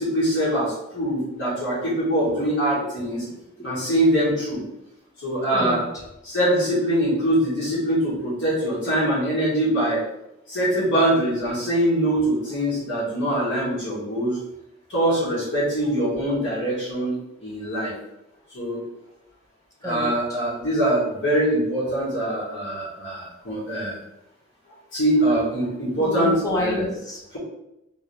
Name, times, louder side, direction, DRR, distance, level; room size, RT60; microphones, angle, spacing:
voice 1, 0.0-3.2 3.6-4.6 5.2-5.8 6.2-10.0 10.5-14.4 14.9-17.9 18.5-18.8 19.8-24.0 24.9-26.9, right 1 dB, 60° left, -7 dB, 1.4 m, -23 dB
voice 2, 2.7-3.9 5.5-6.0 19.8-20.4 26.0-27.4, left 1 dB, 15° left, -2 dB, 0.6 m, -31 dB
3.7 x 2.6 x 3.2 m, 0.85 s
head